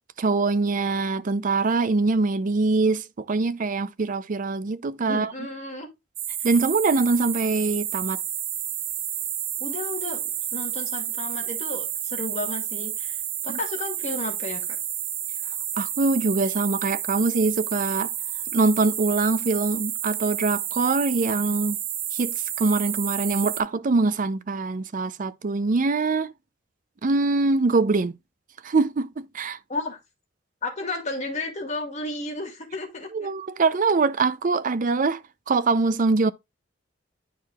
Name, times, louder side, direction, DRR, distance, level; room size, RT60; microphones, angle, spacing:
voice 1, 0.2-5.3 6.4-8.2 13.5-13.6 15.8-18.1 18.5-21.8 22.1-26.3 27.0-28.2 28.6-29.6 33.1-36.3, right 3 dB, 45° right, 0.5 m, -23 dB
voice 2, 5.1-5.9 9.6-14.7 29.7-30.0 30.6-33.3, left 2 dB, 35° left, 2.2 m, -33 dB
sound 1, 6.2-23.6, right 10 dB, 75° right, 1.0 m, -30 dB
10.5 x 4.6 x 2.3 m
head